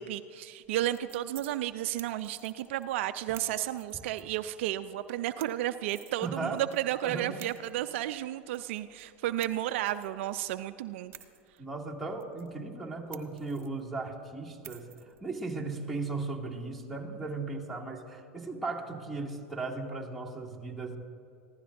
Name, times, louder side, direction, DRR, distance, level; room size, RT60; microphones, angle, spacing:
voice 1, 0.0-11.1, right 13 dB, 65° right, 11 dB, 0.4 m, -33 dB
sound 1, 0.6-17.5, right 11 dB, 40° right, 1.3 m, -56 dB
voice 2, 6.2-6.6 7.0-7.5 11.6-21.0, right 3 dB, ahead, -5 dB, 2.4 m, -37 dB
23.5 x 16.0 x 2.6 m, 2.5 s
hypercardioid pair, 90°, 7 cm